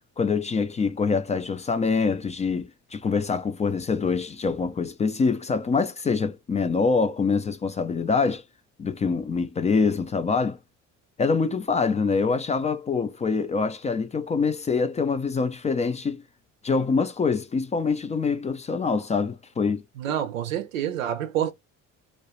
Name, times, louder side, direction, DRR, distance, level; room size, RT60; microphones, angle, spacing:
voice 1, 0.2-8.4 8.8-10.6 11.2-16.2 16.6-19.8, left 4 dB, 20° left, 0.3 m, -25 dB
voice 2, 20.0-21.5, right 10 dB, 85° right, 0.5 m, -27 dB
2.3 x 2.1 x 2.8 m
hypercardioid pair, 55°, 39 cm